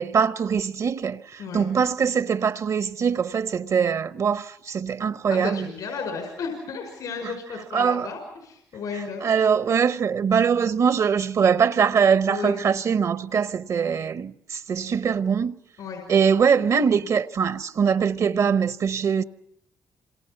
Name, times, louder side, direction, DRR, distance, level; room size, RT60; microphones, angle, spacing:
voice 1, 0.0-5.7 7.7-8.1 9.2-15.6 16.1-19.2, right 6 dB, 60° right, 0.9 m, -22 dB
voice 2, 5.3-9.2 12.3-12.6 15.8-16.1, left 5 dB, 80° left, 5.3 m, -33 dB
28.0 x 26.5 x 5.9 m
cardioid pair, 70°, 6 cm